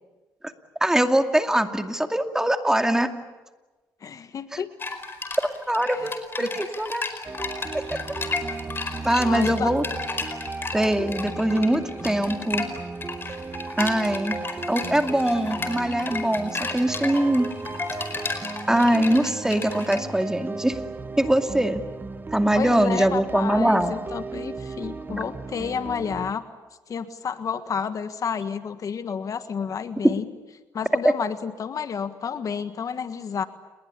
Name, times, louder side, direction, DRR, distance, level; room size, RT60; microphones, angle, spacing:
voice 1, 0.8-3.1 4.5-4.6 5.4-7.1 7.7-8.0 9.0-9.8 10.7-12.6 13.8-14.4 14.7-17.5 18.7-20.8 21.2-21.8 22.3-23.9, right 1 dB, 5° right, 6 dB, 2.4 m, -22 dB
voice 2, 4.0-4.7 6.0-6.1 6.4-6.5 9.2-9.7 22.5-26.4 26.9-30.2 30.7-33.5, left 6 dB, 50° left, 10 dB, 1.6 m, -30 dB
sound 1, 4.8-20.0, left 3 dB, 30° left, 4.7 m, -33 dB
sound 2, 7.2-26.3, right 4 dB, 25° right, 1.2 m, -36 dB
29.5 x 21.0 x 8.5 m, 1.2 s
cardioid pair, 80°, 7 cm